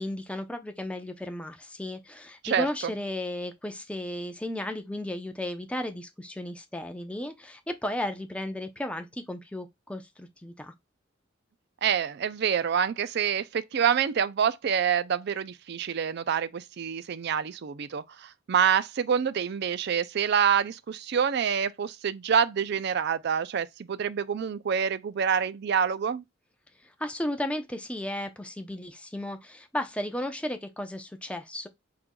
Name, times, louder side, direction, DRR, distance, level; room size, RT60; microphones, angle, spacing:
voice 1, 0.0-10.7 27.0-31.7, left 1 dB, 5° left, 0.6 m, -34 dB
voice 2, 2.4-2.9 11.8-26.2, right 7 dB, 55° right, 0.4 m, -27 dB
4.5 x 3.8 x 2.2 m
head